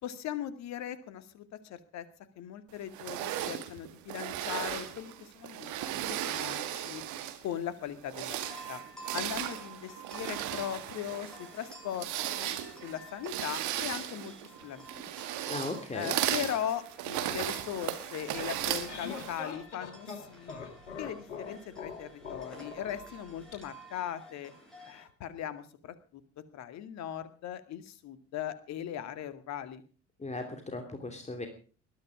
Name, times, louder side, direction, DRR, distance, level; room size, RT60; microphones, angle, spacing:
voice 1, 0.0-2.1 2.4-7.0 7.4-8.8 9.1-12.6 12.8-14.3 14.6-15.0 15.3-15.4 15.9-20.5 21.0-24.5 24.8-26.2 26.5-29.8, left 10 dB, 50° left, 12 dB, 2.1 m, -39 dB
sound 1, 2.9-7.5 8.0-19.5, right 12 dB, 55° right, 2.3 m, -36 dB
sound 2, 8.3-25.0, right 3 dB, ahead, 7.8 m, -52 dB
voice 2, 15.5-16.2 30.2-31.5, left 2 dB, 20° left, 5 dB, 3.0 m, -37 dB
sound 3, 18.5-23.6, left 5 dB, 75° left, 3.2 m, -43 dB
21.0 x 13.0 x 5.0 m, 0.40 s
figure-of-eight pair, 55°, 35 cm